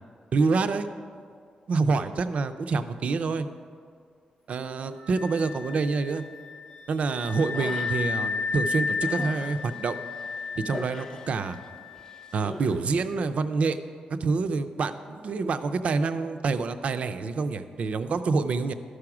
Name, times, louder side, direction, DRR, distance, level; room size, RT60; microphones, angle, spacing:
voice 1, 0.3-0.9 1.1-1.2 1.7-3.5 4.5-6.2 6.9-10.0 10.6-11.6 12.3-13.8 14.2-18.7, right 4 dB, 55° right, 10 dB, 0.5 m, -27 dB
Wind instrument woodwind instrument, 4.9-12.4, left 5 dB, 80° left, 0.9 m, -33 dB
Human voice, 7.3-8.3 8.7-11.7 11.9-12.8, left 2 dB, 25° left, 0.6 m, -42 dB
12.5 x 4.9 x 5.9 m, 2.2 s
wide cardioid pair, 130°, 3 cm